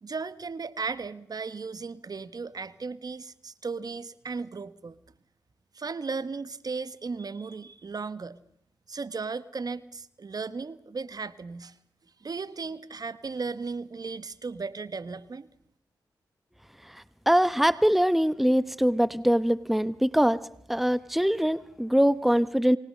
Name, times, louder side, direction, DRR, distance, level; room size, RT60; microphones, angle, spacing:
voice 1, 0.0-5.0 5.7-8.4 8.9-11.7 12.2-15.5, right 4 dB, 50° right, 15 dB, 1.3 m, -36 dB
voice 2, 17.3-20.4 20.7-22.8, equal, ahead, 16 dB, 1.0 m, -23 dB
27.0 x 20.0 x 6.7 m, 0.71 s
supercardioid pair, 45°, 8 cm